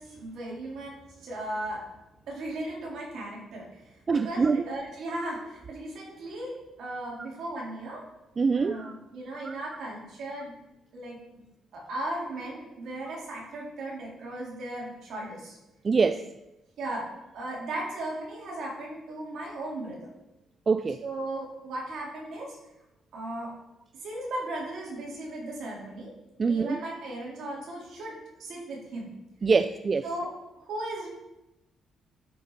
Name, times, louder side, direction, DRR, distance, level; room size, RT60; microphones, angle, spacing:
voice 1, 0.0-1.8 2.3-3.8 4.1-8.0 8.5-10.6 10.9-11.4 11.7-15.6 16.8-17.1 17.3-20.1 21.0-22.5 23.1-23.5 24.0-26.1 26.4-29.1 30.0-30.3 30.6-31.1, right 1 dB, 70° right, 3.9 m, -36 dB
voice 2, 4.1-4.6 8.4-8.9 9.4-9.5 15.8-16.3 20.7-21.0 26.4-26.8 29.4-30.1, right 4 dB, 35° right, 0.4 m, -24 dB
12.0 x 5.4 x 5.1 m
cardioid pair, 90°, 0 cm